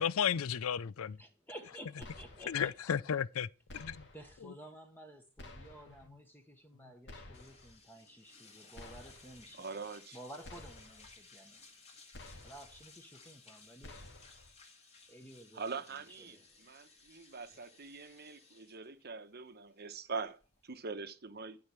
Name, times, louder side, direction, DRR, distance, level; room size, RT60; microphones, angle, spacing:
voice 1, 0.0-1.2 2.5-3.5 3.7-4.0, left 8 dB, 75° left, 0.4 m, -33 dB
voice 2, 1.2-2.7 4.1-9.7 10.1-11.6 12.4-14.0 15.1-16.7, right 1 dB, 10° left, 1.3 m, -53 dB
sound 1, 2.0-2.7 3.7-4.4 5.4-6.1 7.1-7.8 8.7-9.4 10.4-11.1 12.1-12.8 13.8-14.5, left 2 dB, 55° left, 2.0 m, -52 dB
sound 2, 7.3-20.9, left 3 dB, 30° left, 2.4 m, -59 dB
voice 3, 9.6-10.2 15.5-21.6, right 4 dB, 50° right, 1.1 m, -43 dB
12.5 x 4.9 x 7.0 m
head